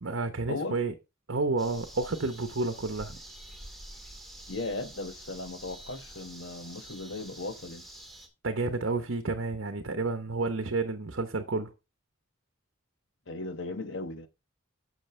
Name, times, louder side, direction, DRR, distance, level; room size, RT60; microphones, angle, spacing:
voice 1, 0.0-0.9 1.3-3.2 8.4-11.7, right 3 dB, 65° right, 0.9 m, -30 dB
sound 1, 1.6-8.3, right 1 dB, ahead, 2.0 m, -47 dB
voice 2, 4.5-7.8 13.3-14.3, left 2 dB, 65° left, 1.1 m, -37 dB
10.5 x 6.4 x 3.2 m
head